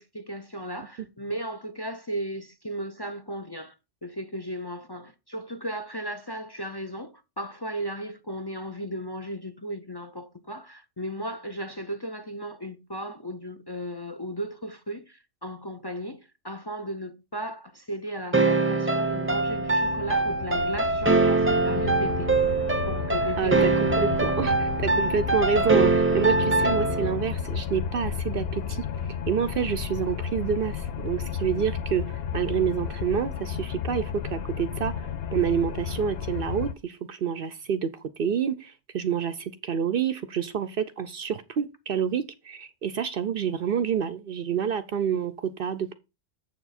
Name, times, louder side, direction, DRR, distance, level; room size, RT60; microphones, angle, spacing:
voice 1, 0.0-3.7 4.0-23.7, right 1 dB, 25° left, 0.6 m, -36 dB
sound 1, 18.3-27.2, right 3 dB, 15° right, 0.5 m, -23 dB
sound 2, 19.1-36.7, left 7 dB, 65° left, 0.9 m, -33 dB
voice 2, 23.4-45.9, right 7 dB, 60° right, 0.7 m, -28 dB
7.5 x 6.9 x 4.2 m
omnidirectional pair, 1.2 m